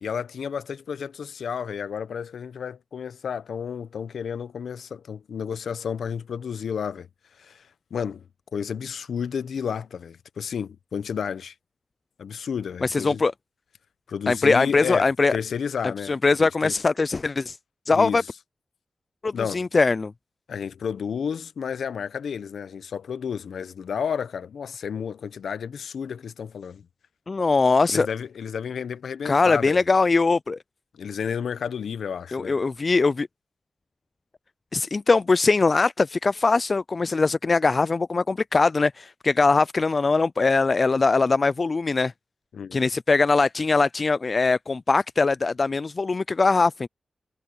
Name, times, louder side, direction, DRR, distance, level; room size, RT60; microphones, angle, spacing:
voice 1, 0.0-7.1 7.4-8.3 8.5-11.5 12.2-13.2 14.1-16.8 17.9-18.2 19.3-19.7 20.5-26.9 27.9-29.8 30.9-32.6 42.5-42.8, left 7 dB, 90° left, 0.7 m, -31 dB
voice 2, 12.8-13.3 14.3-15.3 16.1-17.6 17.9-18.2 19.2-20.1 27.3-28.1 29.2-30.6 32.3-33.3 34.7-42.1 42.7-46.9, left 3 dB, 50° left, 0.3 m, -21 dB
cardioid pair, 50°, 0 cm